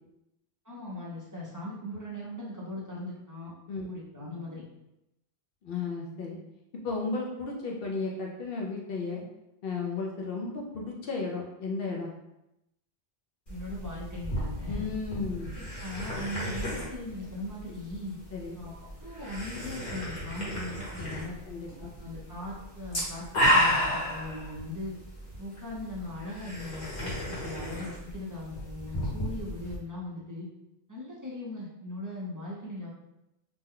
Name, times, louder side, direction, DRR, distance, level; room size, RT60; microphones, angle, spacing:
voice 1, 0.6-3.5 3.8-4.6 13.5-14.8 15.5-18.2 18.6-21.4 21.8-24.9 25.4-30.5 30.9-32.9, left 1 dB, 20° right, -6 dB, 0.5 m, -39 dB
voice 2, 5.6-6.4 6.8-9.2 9.6-12.1 14.7-15.5 18.3-18.6 21.5-21.9, left 4 dB, 60° left, -1 dB, 0.7 m, -34 dB
sound 1, 13.5-29.8, equal, 40° left, 1.1 m, -33 dB
2.9 x 2.2 x 3.6 m, 0.88 s
omnidirectional pair, 1.2 m